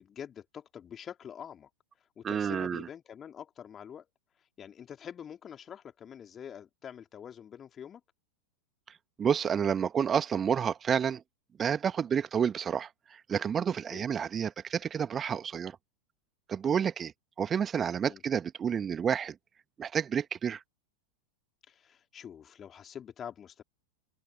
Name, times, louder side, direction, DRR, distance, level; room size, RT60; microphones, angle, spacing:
voice 1, 0.0-1.7 2.2-4.1 4.6-8.0 13.9-14.1 18.0-18.2 21.7-23.6, left 8 dB, 25° left, 3.9 m, -45 dB
voice 2, 2.2-2.8 9.2-11.2 11.6-12.9 13.3-15.7 16.5-17.1 17.4-19.3 19.8-20.6, right 7 dB, 20° right, 1.4 m, -29 dB
open air
figure-of-eight pair, 90°, 0 cm